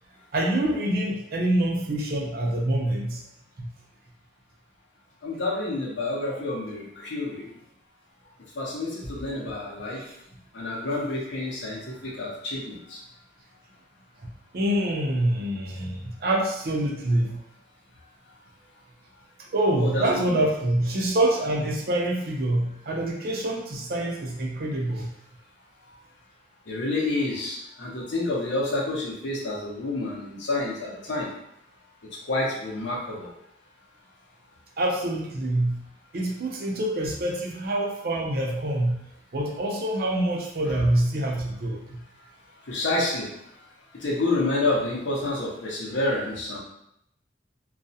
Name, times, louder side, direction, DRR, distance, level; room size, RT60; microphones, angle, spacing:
voice 1, 0.3-3.2 3.6-3.7 10.1-10.2 14.5-17.4 19.5-25.1 34.8-35.9 36.1-39.0 39.3-42.0, right 1 dB, 55° right, -1 dB, 0.5 m, -26 dB
voice 2, 5.2-7.5 8.6-10.0 10.5-13.0 19.8-20.4 26.7-31.3 32.3-33.3 42.7-43.3 43.9-46.6, left 2 dB, 85° left, -3 dB, 0.7 m, -29 dB
2.3 x 2.0 x 2.6 m, 0.77 s
head